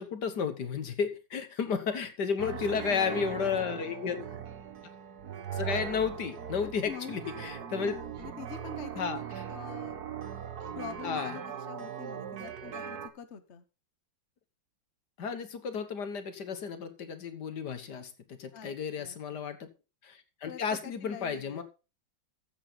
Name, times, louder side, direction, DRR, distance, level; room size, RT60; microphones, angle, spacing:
voice 1, 0.0-4.2 5.5-7.9 9.0-9.2 11.0-11.4 15.2-19.7 20.0-21.6, left 6 dB, 60° left, 10 dB, 1.9 m, -33 dB
voice 2, 2.4-4.4 6.6-7.1 7.8-9.1 9.5-10.0 10.7-13.6 18.5-19.4 20.4-21.6, left 8 dB, 45° left, 9 dB, 1.1 m, -45 dB
sound 1, 2.4-13.1, right 8 dB, 55° right, 1.6 m, -39 dB
14.0 x 8.2 x 4.0 m, 0.31 s
omnidirectional pair, 2.1 m